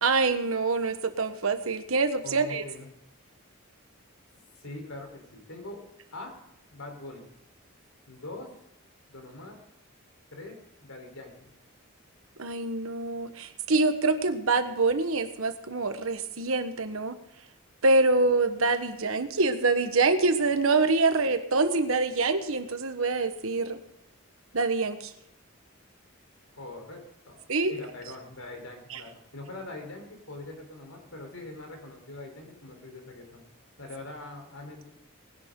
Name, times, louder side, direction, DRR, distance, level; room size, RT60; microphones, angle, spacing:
voice 1, 0.0-2.6 12.4-17.2 17.8-23.8 24.5-25.1 27.5-27.7 28.9-29.0, right 3 dB, 70° right, 9 dB, 1.3 m, -25 dB
voice 2, 2.2-2.9 4.6-5.8 6.1-6.3 6.7-7.3 8.1-8.5 9.1-9.6 10.3-11.5 26.5-33.4 33.8-34.9, left 2 dB, 80° left, 3 dB, 4.1 m, -43 dB
19.5 x 11.0 x 3.8 m, 0.85 s
head